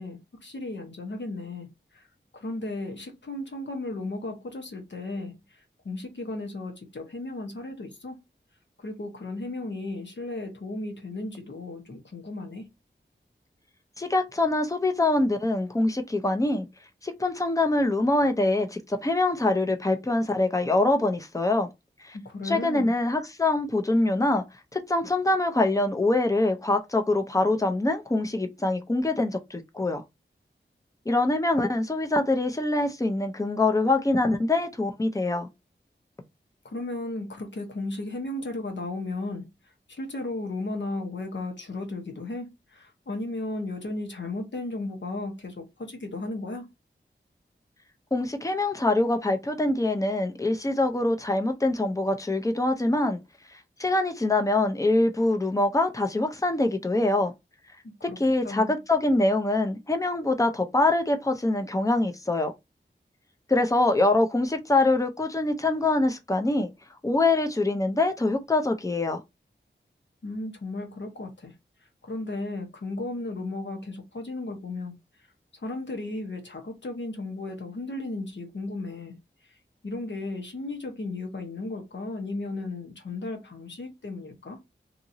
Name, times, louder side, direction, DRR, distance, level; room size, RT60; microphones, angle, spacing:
voice 1, 0.0-2.1 2.3-8.2 8.8-12.7 22.1-22.9 36.6-39.5 39.9-46.7 57.8-58.2 58.4-58.8 70.2-71.5 72.0-75.0 75.5-79.2 79.8-84.6, left 2 dB, 65° left, 1.0 m, -35 dB
voice 2, 14.0-16.7 17.0-21.7 22.0-22.2 22.4-24.4 24.7-30.0 31.1-35.5 48.1-53.2 53.8-57.3 58.0-62.5 63.5-66.7 67.0-69.2, left 2 dB, 15° left, 0.5 m, -24 dB
2.9 x 2.6 x 2.6 m
wide cardioid pair, 80°, 20 cm